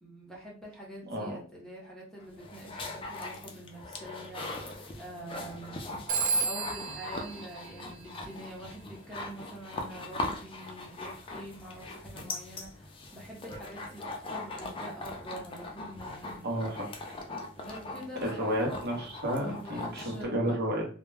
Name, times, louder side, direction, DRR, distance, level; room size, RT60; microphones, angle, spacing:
voice 1, 0.0-5.9 6.4-16.5 17.6-18.8 19.4-20.6, right 1 dB, 5° left, -5 dB, 0.8 m, -45 dB
voice 2, 1.0-1.4 16.4-16.9 18.2-20.8, equal, 55° right, -1 dB, 0.8 m, -31 dB
sound 1, 2.2-20.2, left 2 dB, 25° left, 0.4 m, -40 dB
Telephone, 6.1-8.6, right 4 dB, 70° right, 0.4 m, -33 dB
2.2 x 2.1 x 3.2 m, 0.41 s
head